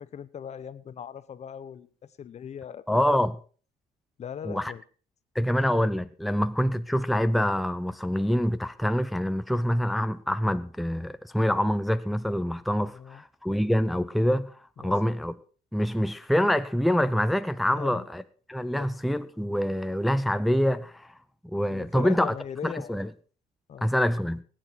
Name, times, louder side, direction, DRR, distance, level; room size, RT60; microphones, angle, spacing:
voice 1, 0.0-3.1 4.2-4.8 12.8-13.2 14.8-14.9 17.7-18.1 18.8-18.9 21.7-23.0 23.7-23.9, left 8 dB, 40° left, 0.9 m, -39 dB
voice 2, 2.9-3.4 4.5-4.7 5.3-15.3 15.7-18.2 18.5-21.1 21.4-22.3 22.6-23.1 23.8-24.4, equal, ahead, 0.6 m, -26 dB
19.0 x 9.2 x 4.6 m
cardioid pair, 110°, 17 cm